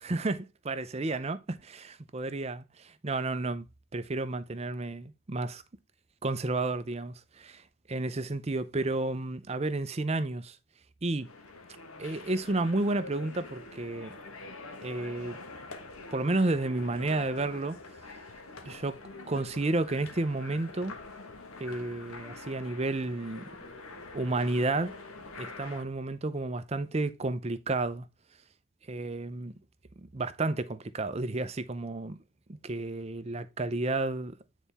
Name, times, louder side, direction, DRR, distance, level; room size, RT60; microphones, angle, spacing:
voice 1, 0.0-3.7 3.9-5.6 6.2-10.6 11.0-11.3 12.0-14.1 14.8-15.4 16.1-17.8 18.7-19.0 19.3-21.0 21.6-23.5 24.1-25.0 25.3-28.1 28.9-29.5 30.0-32.2 32.5-34.4, right 2 dB, 30° right, 0.5 m, -31 dB
sound 1, 11.2-25.9, left 3 dB, 85° left, 1.3 m, -45 dB
9.2 x 4.1 x 3.4 m
head